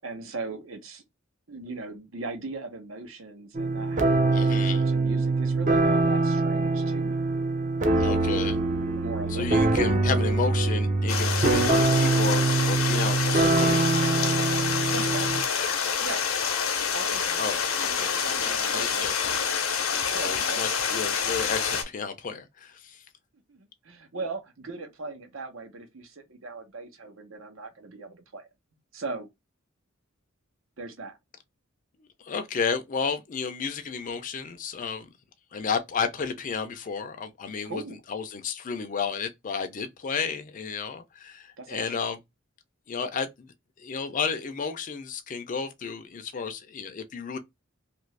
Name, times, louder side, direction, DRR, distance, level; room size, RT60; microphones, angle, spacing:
voice 1, 0.0-1.0 1.5-7.2 8.9-9.8 14.6-15.3 16.0-16.2 16.9-19.4 20.1-20.6 23.5-28.5 28.9-29.3 30.8-31.2 37.6-38.0 41.6-41.9, right 3 dB, 70° right, 0.9 m, -39 dB
sound 1, 3.5-15.4, right 3 dB, 35° right, 0.5 m, -24 dB
voice 2, 4.3-4.8 8.0-8.6 9.3-13.9 17.4-19.4 20.1-23.0 32.2-35.1 35.5-37.8 38.1-42.2 42.9-43.5 43.8-47.4, left 5 dB, 40° left, 0.4 m, -32 dB
Stream, 11.1-21.8, left 6 dB, 75° left, 0.7 m, -27 dB
2.8 x 2.5 x 3.1 m
head